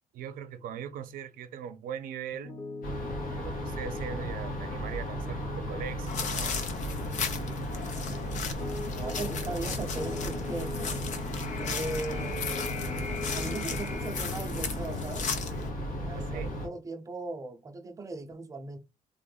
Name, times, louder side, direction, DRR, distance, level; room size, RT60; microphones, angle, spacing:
voice 1, 0.1-2.5 3.3-6.6 16.1-16.5, right 8 dB, 80° right, 0.6 m, -40 dB
Piano, 2.3-11.7 12.1-14.1, left 2 dB, 25° left, 0.9 m, -43 dB
sound 1, 2.8-16.7, equal, 85° left, 1.7 m, -35 dB
sound 2, 6.1-15.7, left 6 dB, 60° left, 0.6 m, -36 dB
voice 2, 8.9-10.9 11.6-15.3 16.0-18.8, right 3 dB, 25° right, 0.6 m, -38 dB
3.7 x 2.6 x 3.7 m
cardioid pair, 120°, 14 cm